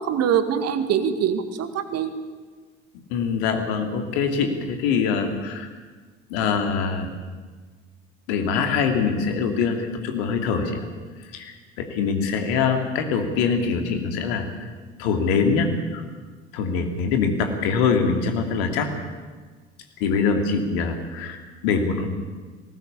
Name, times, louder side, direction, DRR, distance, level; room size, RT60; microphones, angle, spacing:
voice 1, 0.0-2.1, right 8 dB, 50° right, 10 dB, 2.0 m, -23 dB
voice 2, 3.1-5.7 6.3-7.1 8.3-10.8 11.2-14.7 15.0-16.0 16.5-18.9 20.0-22.1, left 5 dB, 65° left, 5 dB, 2.9 m, -24 dB
20.0 x 18.5 x 8.5 m, 1.4 s
figure-of-eight pair, 60°, 33 cm